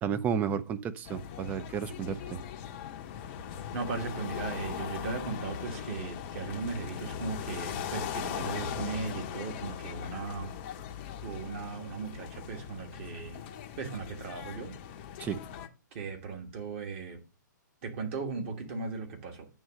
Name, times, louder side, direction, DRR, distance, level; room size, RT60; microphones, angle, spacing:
voice 1, 0.0-2.4 15.2-15.4, right 7 dB, 15° right, 0.4 m, -32 dB
sound 1, 1.0-15.7, left 9 dB, 30° left, 0.7 m, -39 dB
voice 2, 3.7-10.5 11.2-13.4 13.8-14.7 15.9-17.2 17.8-19.5, right 4 dB, 40° right, 1.7 m, -37 dB
9.0 x 3.1 x 6.3 m
figure-of-eight pair, 130°, 10 cm